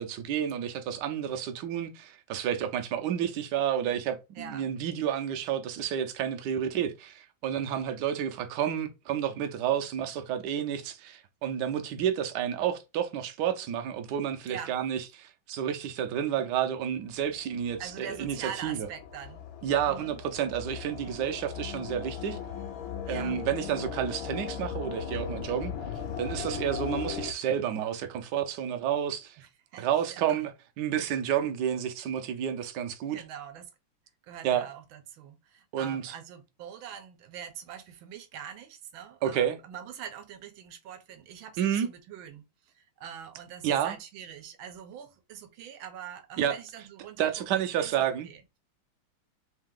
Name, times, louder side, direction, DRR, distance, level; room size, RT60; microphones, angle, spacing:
voice 1, 0.0-18.9 19.6-22.4 23.1-25.7 26.2-29.4 29.8-30.5 30.8-33.2 34.4-34.7 35.7-36.1 39.2-39.6 41.6-41.9 43.6-44.0 46.4-46.6 47.2-48.3, right 9 dB, 70° right, 1.1 m, -30 dB
voice 2, 4.4-4.7 14.4-14.7 17.8-19.5 19.8-20.2 23.1-23.4 29.4-30.2 33.1-33.7 34.2-48.6, right 8 dB, 85° right, 1.5 m, -44 dB
sound 1, 17.2-27.3, left 8 dB, 75° left, 1.4 m, -38 dB
3.6 x 2.8 x 3.7 m
omnidirectional pair, 2.2 m